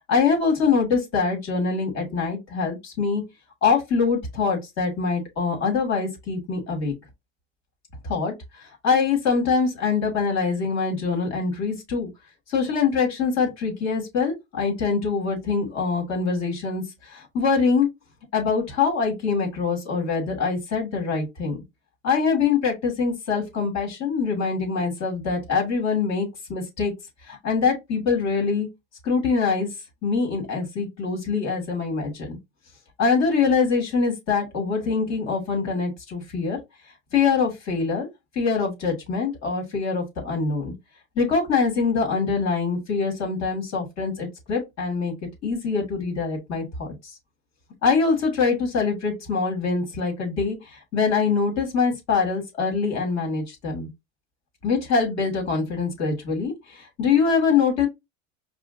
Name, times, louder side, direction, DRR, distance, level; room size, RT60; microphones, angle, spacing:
voice 1, 0.1-3.2 3.6-6.9 8.0-8.3 8.8-12.1 12.5-17.9 18.3-21.6 22.0-26.9 27.3-28.7 29.0-29.7 30.0-32.4 33.0-36.6 37.1-38.1 38.3-40.7 41.2-46.9 47.8-53.9 54.6-57.9, left 5 dB, 50° left, 2.1 m, -24 dB
4.9 x 2.4 x 2.6 m
supercardioid pair, 95°, 34 cm